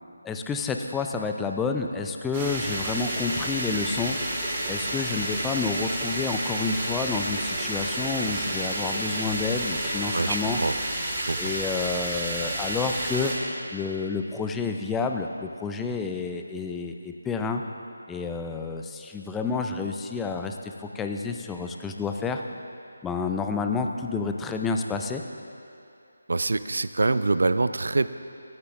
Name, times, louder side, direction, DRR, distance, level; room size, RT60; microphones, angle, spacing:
voice 1, 0.2-4.2 4.7-10.6 11.4-13.3 13.7-17.6 18.1-22.4 23.0-25.2, left 4 dB, 5° left, 4 dB, 0.4 m, -29 dB
sound 1, 2.3-13.3, right 1 dB, 25° right, 1.9 m, -30 dB
voice 2, 10.1-10.7 11.2-11.5 26.3-28.1, right 3 dB, 65° right, 13 dB, 0.4 m, -25 dB
18.5 x 9.6 x 2.6 m, 2.7 s
figure-of-eight pair, 155°, 0 cm